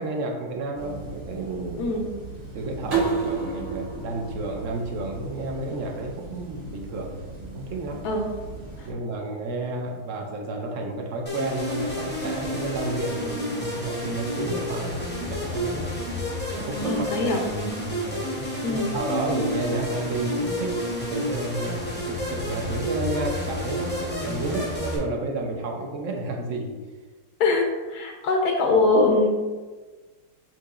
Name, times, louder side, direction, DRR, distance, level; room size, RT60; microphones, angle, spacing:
voice 1, 0.0-1.9 2.5-7.2 7.5-8.0 8.8-15.9 16.6-17.2 18.1-18.3 18.8-20.8 21.1-26.7, right 2 dB, 65° right, 1 dB, 0.8 m, -31 dB
sound 1, 0.7-8.9, right 1 dB, 45° right, 1.1 m, -40 dB
sound 2, 2.9-5.7, right 5 dB, 85° right, 2.1 m, -30 dB
sound 3, 11.3-25.0, left 1 dB, 15° left, 0.3 m, -30 dB
voice 2, 16.8-17.4 18.6-18.9 27.4-29.3, left 3 dB, 80° left, 1 dB, 1.2 m, -22 dB
7.6 x 2.8 x 2.4 m, 1.3 s
omnidirectional pair, 1.7 m